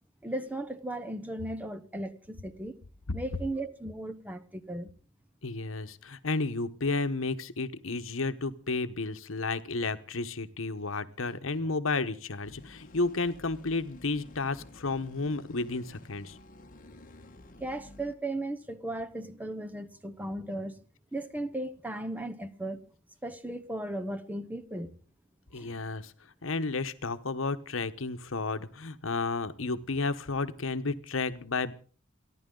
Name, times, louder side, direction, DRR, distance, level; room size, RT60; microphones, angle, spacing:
voice 1, 0.2-2.8 3.1-4.9 17.6-20.8 21.1-22.8 23.2-25.0 25.5-25.8, right 1 dB, 10° right, 0.8 m, -36 dB
voice 2, 5.4-16.4 25.5-26.1 26.4-31.7, left 3 dB, 70° left, 1.1 m, -32 dB
sound 1, 12.4-18.1, left 1 dB, 40° left, 1.3 m, -52 dB
28.5 x 11.0 x 3.9 m
head